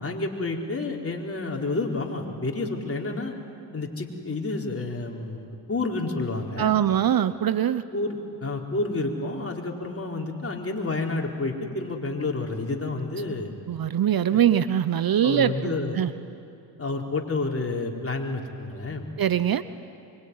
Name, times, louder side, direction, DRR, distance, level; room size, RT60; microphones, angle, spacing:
voice 1, 0.0-3.3 3.7-6.7 7.9-13.5 14.3-14.4 15.2-16.0 16.8-19.1, left 3 dB, 30° left, 1 dB, 4.4 m, -30 dB
voice 2, 6.6-7.8 13.7-16.1 19.2-19.6, right 10 dB, 50° right, 14 dB, 0.9 m, -22 dB
24.5 x 24.0 x 9.8 m, 2.6 s
supercardioid pair, 55°, 47 cm